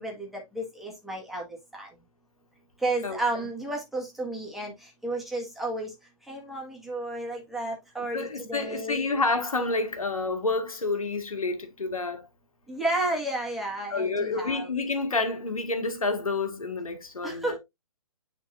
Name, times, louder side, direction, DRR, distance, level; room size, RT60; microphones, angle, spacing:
voice 1, 0.0-1.4 1.7-1.9 2.8-4.7 5.0-5.9 6.3-9.1 12.7-14.7 17.2-17.6, right 2 dB, ahead, 1.8 m, -32 dB
voice 2, 8.1-12.2 13.9-17.6, left 3 dB, 80° left, 1.8 m, -29 dB
10.0 x 3.8 x 2.6 m
figure-of-eight pair, 135°, 18 cm